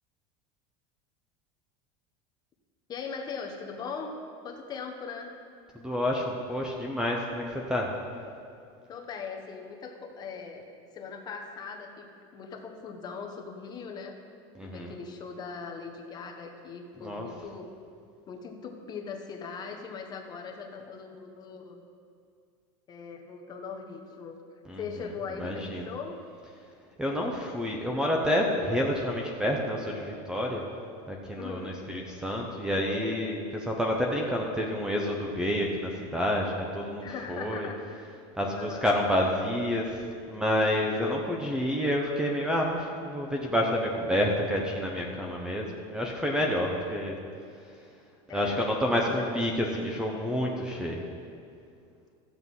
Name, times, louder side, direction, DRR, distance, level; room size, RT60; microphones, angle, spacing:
voice 1, 2.9-4.1 4.4-5.3 8.9-10.7 10.9-14.2 14.6-17.7 18.3-21.8 22.9-24.3 24.8-26.2 31.4-31.8 37.0-38.0 38.5-38.9 48.3-48.6 48.9-49.3, left 5 dB, 25° left, 3 dB, 1.1 m, -40 dB
voice 2, 5.7-7.9 14.6-14.9 17.0-17.3 24.7-24.8 25.4-25.9 27.0-30.6 31.1-37.7 38.4-40.0 40.3-47.2 48.3-51.0, equal, 5° right, 0 dB, 0.8 m, -29 dB
14.0 x 7.9 x 5.5 m, 2.3 s
cardioid pair, 160°, 15 cm